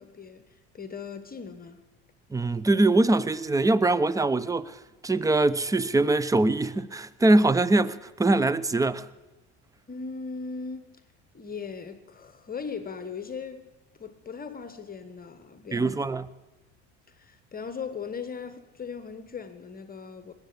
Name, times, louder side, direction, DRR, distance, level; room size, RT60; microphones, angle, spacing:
voice 1, 0.0-1.8 9.9-11.0 11.3-13.7 14.0-16.0 17.1-20.3, left 5 dB, 25° left, 1.3 m, -38 dB
voice 2, 2.3-9.1 15.7-16.3, right 2 dB, 10° right, 0.6 m, -23 dB
20.0 x 8.2 x 8.4 m
hypercardioid pair, 80°, 33 cm